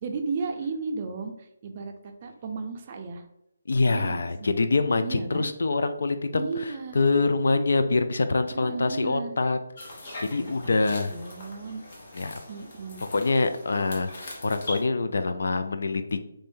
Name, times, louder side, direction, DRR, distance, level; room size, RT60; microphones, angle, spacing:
voice 1, 0.0-1.3 1.6-3.2 3.8-4.2 5.0-5.5 6.3-7.0 8.5-9.4 10.4-11.8 12.5-13.0, right 4 dB, 35° right, 4 dB, 0.4 m, -34 dB
voice 2, 3.7-9.6 10.2-11.1 12.1-12.4 13.0-16.2, left 3 dB, 70° left, 9 dB, 0.4 m, -25 dB
sound 1, 9.8-14.8, left 1 dB, 50° left, 1.0 m, -42 dB
3.1 x 2.6 x 3.6 m, 0.80 s
hypercardioid pair, 160°, 0 cm